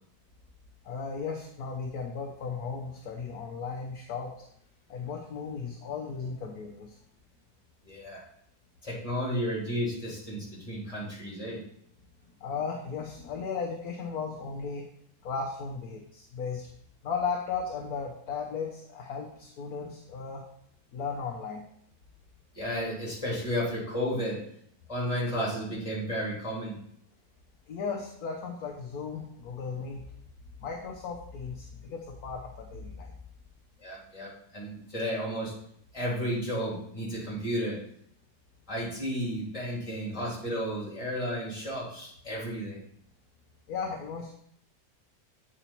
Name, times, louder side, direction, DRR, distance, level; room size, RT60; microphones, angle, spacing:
voice 1, 0.8-4.3 4.9-7.0 12.4-14.8 15.2-16.7 17.0-20.4 20.9-21.6 27.7-30.0 30.6-33.1 43.7-44.3, left 5 dB, 65° left, 1 dB, 1.2 m, -36 dB
voice 2, 7.8-8.2 8.8-11.6 22.5-24.4 24.9-26.7 33.8-35.5 35.9-37.8 38.7-42.8, equal, 20° left, -5 dB, 3.2 m, -32 dB
8.5 x 5.0 x 4.4 m, 0.67 s
omnidirectional pair, 1.8 m